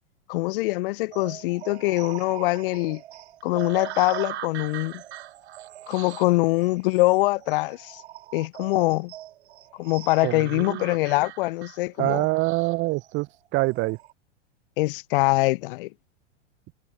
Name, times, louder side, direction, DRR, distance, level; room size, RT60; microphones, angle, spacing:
voice 1, 0.3-3.0 3.4-5.0 5.9-8.0 8.3-9.1 9.8-12.3 14.8-15.9, left 22 dB, 45° left, 0.9 m, -23 dB
sound 1, 1.1-14.1, right 13 dB, 60° right, 2.7 m, -41 dB
voice 2, 10.2-10.8 12.0-14.0, right 21 dB, 30° right, 0.9 m, -25 dB
figure-of-eight pair, 100°, 37 cm